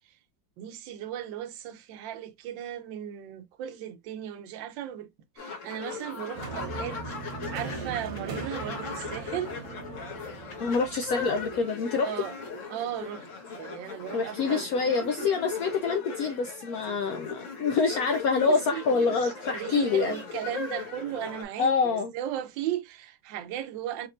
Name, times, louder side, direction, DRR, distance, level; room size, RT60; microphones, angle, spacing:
voice 1, 0.6-5.1 5.4-7.1 7.5-9.6 12.0-12.3 12.7-13.3 13.5-14.7 18.5-24.1, right 11 dB, 75° right, 1.3 m, -36 dB
sound 1, 5.4-21.4, left 5 dB, 45° left, 1.2 m, -39 dB
sound 2, 6.4-11.6, right 4 dB, 55° right, 1.2 m, -39 dB
voice 2, 10.6-12.1 14.1-20.2 21.6-22.1, left 5 dB, 85° left, 0.8 m, -26 dB
4.2 x 3.2 x 2.4 m
omnidirectional pair, 2.1 m